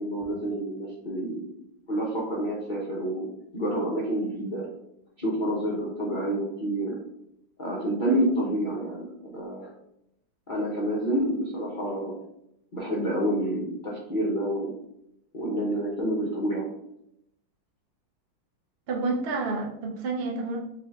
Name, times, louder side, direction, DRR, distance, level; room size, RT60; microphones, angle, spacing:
voice 1, 0.0-1.5 1.9-4.7 5.2-7.0 7.6-9.7 10.5-12.1 12.7-14.7 15.3-16.7, right 1 dB, 70° left, -4 dB, 0.4 m, -28 dB
voice 2, 18.9-20.6, right 3 dB, 70° right, 0 dB, 0.5 m, -29 dB
4.7 x 2.4 x 3.8 m, 0.79 s
omnidirectional pair, 2.2 m